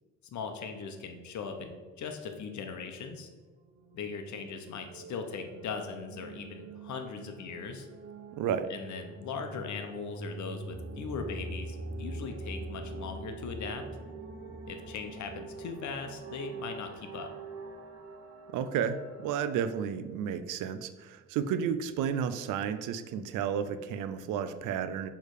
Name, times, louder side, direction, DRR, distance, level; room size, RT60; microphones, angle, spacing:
voice 1, 0.3-3.3 3.9-7.9 8.7-13.8 14.7-17.3, left 5 dB, 70° left, 5 dB, 1.0 m, -39 dB
sound 1, 3.6-19.7, right 3 dB, 50° right, 1.0 m, -44 dB
voice 2, 8.4-8.7 18.5-25.1, right 8 dB, 90° right, 11 dB, 0.5 m, -32 dB
6.5 x 3.4 x 4.8 m, 1.4 s
cardioid pair, 90°, 30 cm